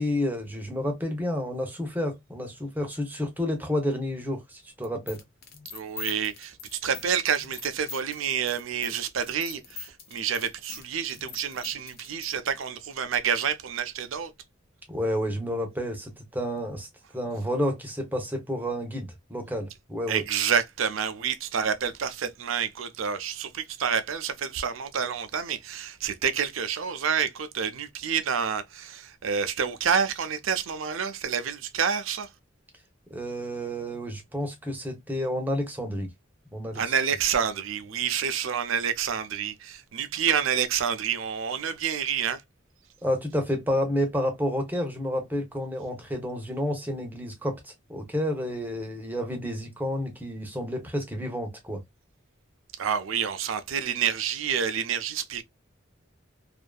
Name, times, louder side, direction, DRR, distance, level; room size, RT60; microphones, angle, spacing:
voice 1, 0.0-5.2 14.9-16.9 17.1-20.2 33.1-36.1 36.5-36.8 43.0-51.8, equal, 10° right, 0.7 m, -30 dB
sound 1, 4.8-12.3, left 6 dB, 50° left, 0.6 m, -42 dB
voice 2, 5.6-14.3 20.1-32.3 36.7-42.4 52.8-55.4, right 7 dB, 75° right, 0.5 m, -28 dB
2.7 x 2.5 x 2.2 m
head